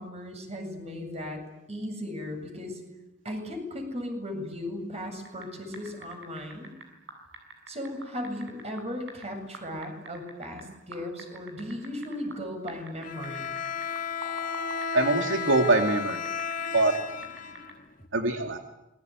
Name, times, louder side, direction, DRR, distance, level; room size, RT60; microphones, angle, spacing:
voice 1, 0.0-1.4 1.7-2.8 3.2-6.7 7.7-13.6, left 1 dB, 35° right, 4 dB, 8.0 m, -36 dB
sound 1, 5.2-5.5 5.7-9.2 9.5-10.6 10.9-12.4 12.7-17.0 17.2-17.7, right 3 dB, 65° right, 7.0 m, -44 dB
Bowed string instrument, 13.0-18.1, left 6 dB, 45° left, 1.7 m, -33 dB
voice 2, 14.9-16.2 16.7-16.9 18.1-18.6, right 2 dB, 85° right, 4 dB, 2.5 m, -23 dB
27.5 x 22.5 x 9.5 m, 0.92 s
head